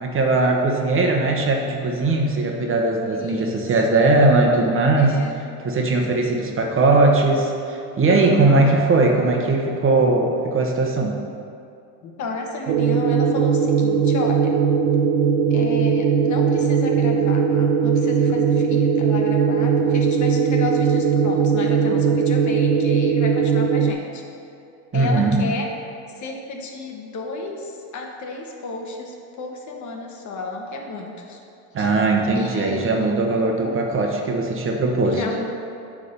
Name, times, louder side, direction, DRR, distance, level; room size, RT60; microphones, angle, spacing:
voice 1, 0.0-5.2 5.6-11.2 24.9-25.4 31.7-35.2, right 2 dB, 35° right, 1 dB, 1.1 m, -19 dB
voice 2, 3.1-3.6 5.0-5.4 8.1-8.8 12.0-14.5 15.5-24.2 24.9-25.7 26.1-31.4 31.8-31.9 32.3-33.2 33.6-33.8 35.0-35.5, left 3 dB, 50° left, 1 dB, 1.3 m, -32 dB
sound 1, 12.7-23.9, right 6 dB, 70° right, 0.6 m, -19 dB
9.4 x 3.7 x 6.8 m, 2.5 s
supercardioid pair, 110°, 38 cm